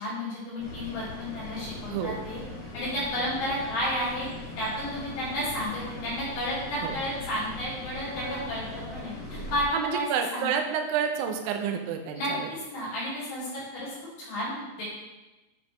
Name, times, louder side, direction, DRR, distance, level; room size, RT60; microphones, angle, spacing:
voice 1, 0.0-2.4 2.7-4.3 4.6-8.6 8.9-10.5 12.2-13.9 14.3-14.8, equal, 65° left, -9 dB, 4.5 m, -32 dB
sound 1, 0.6-9.6, left 2 dB, 40° left, 2.2 m, -40 dB
voice 2, 1.9-2.2 6.8-7.0 9.7-12.5, right 7 dB, 80° right, 4 dB, 2.1 m, -29 dB
8.6 x 5.1 x 3.1 m, 1.1 s
omnidirectional pair, 4.8 m